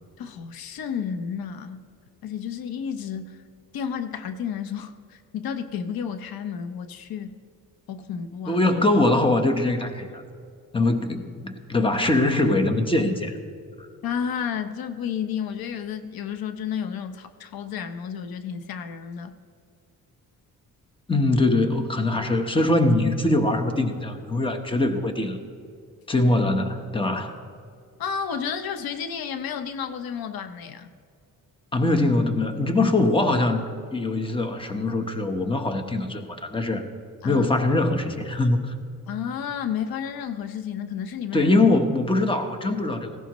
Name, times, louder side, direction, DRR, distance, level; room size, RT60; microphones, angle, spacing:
voice 1, 0.2-1.8 2.2-3.4 3.7-7.4 7.9-8.6 14.0-19.4 28.0-30.9 37.2-37.5 39.1-41.5, left 7 dB, 85° left, 10 dB, 0.8 m, -31 dB
voice 2, 8.5-10.2 10.7-13.3 21.1-25.4 26.1-27.3 31.7-33.6 33.9-36.8 37.2-38.7 41.3-43.2, left 2 dB, 15° left, 6 dB, 1.1 m, -22 dB
18.0 x 16.5 x 3.1 m, 2.2 s
cardioid pair, 115°, 35 cm